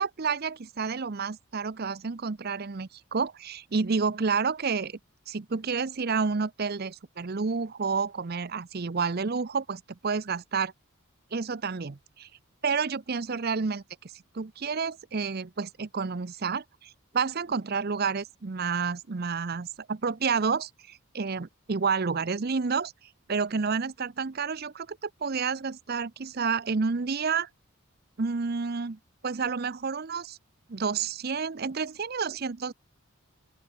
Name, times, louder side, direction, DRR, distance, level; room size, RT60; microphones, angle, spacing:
voice 1, 0.0-5.0 5.3-10.7 11.3-12.3 12.6-13.8 14.3-22.9 23.3-27.5 28.2-29.0 29.2-30.4 30.7-32.7, right 5 dB, 45° right, 0.6 m, -30 dB
open air
head